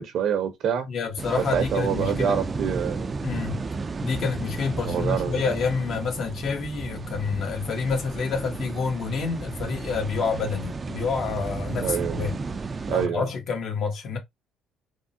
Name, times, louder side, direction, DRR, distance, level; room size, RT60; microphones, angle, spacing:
voice 1, 0.0-0.9 1.4-3.1 4.8-5.4 11.8-12.3 12.9-13.3, right 8 dB, 65° right, 0.7 m, -26 dB
voice 2, 0.9-2.4 3.2-3.6 4.0-12.4 12.9-14.2, left 5 dB, 60° left, 1.4 m, -28 dB
sound 1, 1.2-13.1, right 4 dB, 35° right, 0.4 m, -33 dB
3.5 x 2.1 x 2.7 m
supercardioid pair, 75°, 0 cm